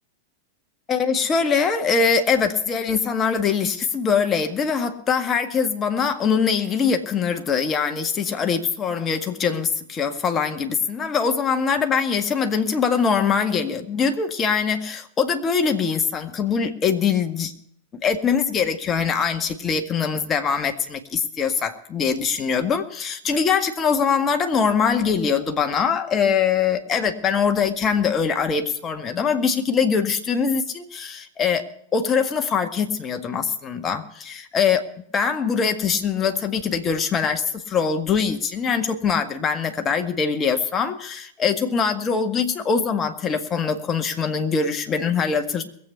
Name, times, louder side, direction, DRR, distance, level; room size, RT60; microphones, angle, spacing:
voice 1, 0.9-17.5 18.0-34.8 35.1-45.6, left 6 dB, 25° left, 5 dB, 1.9 m, -23 dB
21.5 x 8.3 x 5.8 m, 0.67 s
figure-of-eight pair, 90°, 0 cm